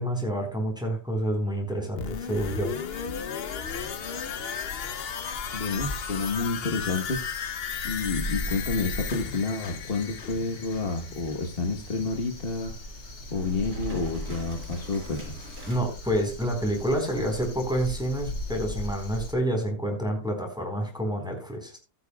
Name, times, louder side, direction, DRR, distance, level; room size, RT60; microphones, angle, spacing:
voice 1, 0.0-2.7 15.7-21.8, right 1 dB, ahead, 2 dB, 4.1 m, -28 dB
sound 1, 2.0-11.7 12.0-12.1, left 7 dB, 50° left, 0.7 m, -35 dB
Crow, 3.7-19.3, left 1 dB, 75° left, 3.3 m, -39 dB
voice 2, 5.5-15.3, left 3 dB, 35° left, 2 dB, 1.4 m, -30 dB
sound 2, 13.3-15.8, right 1 dB, 55° right, 4.8 m, -45 dB
15.5 x 12.0 x 2.3 m, 0.29 s
omnidirectional pair, 1.9 m